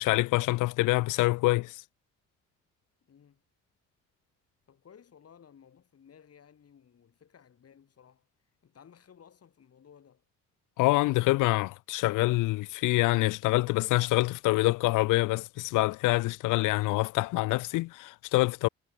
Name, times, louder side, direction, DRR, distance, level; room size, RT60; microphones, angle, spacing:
voice 1, 0.0-1.8 10.8-18.7, left 20 dB, 90° left, 0.5 m, -26 dB
voice 2, 3.0-3.4 4.7-8.3 8.6-10.2, left 8 dB, 50° left, 7.6 m, -57 dB
cardioid pair, 90°, 30 cm